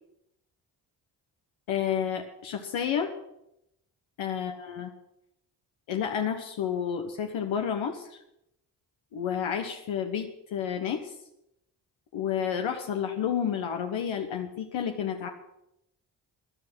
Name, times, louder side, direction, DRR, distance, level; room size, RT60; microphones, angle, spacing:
voice 1, 1.7-3.1 4.2-4.9 5.9-8.2 9.1-11.1 12.1-15.3, left 8 dB, 80° left, 4 dB, 1.3 m, -30 dB
16.0 x 10.0 x 6.1 m, 0.84 s
supercardioid pair, 50°, 47 cm